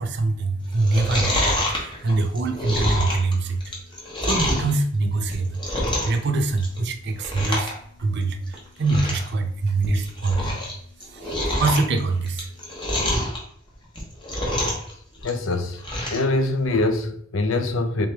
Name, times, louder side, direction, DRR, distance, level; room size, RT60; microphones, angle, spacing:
voice 1, 0.0-13.1, right 3 dB, 60° right, 0.5 m, -25 dB
Chewing mastication, 0.7-4.7 5.2-6.2 6.5-6.9 7.2-7.7 8.0-8.1 8.5-8.6 8.8-9.3 9.7-10.7 11.0-13.4 13.8-14.9 15.2-16.2 16.6-16.7, left 1 dB, 25° left, 1.1 m, -26 dB
voice 2, 15.2-15.8 16.1-18.1, left 2 dB, 75° left, 0.6 m, -23 dB
3.7 x 3.2 x 3.4 m
head